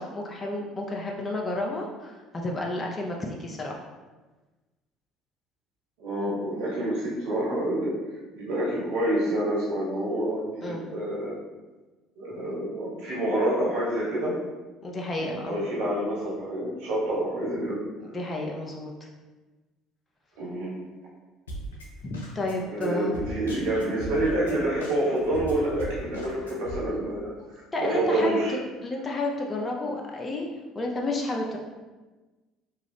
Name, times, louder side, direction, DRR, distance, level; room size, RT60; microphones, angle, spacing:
voice 1, 0.0-3.8 10.6-10.8 14.8-15.6 18.0-19.1 22.0-23.1 27.7-30.5 30.7-31.6, left 2 dB, 30° left, 0 dB, 0.6 m, -31 dB
voice 2, 6.0-7.9 8.3-11.3 12.2-14.4 15.2-17.8 20.4-20.8 22.7-28.5, right 1 dB, 75° right, -7 dB, 1.3 m, -28 dB
Drum kit, 21.5-26.8, right 1 dB, 90° left, 0.5 m, -38 dB
3.6 x 2.4 x 3.3 m, 1.2 s
hypercardioid pair, 60°, 0 cm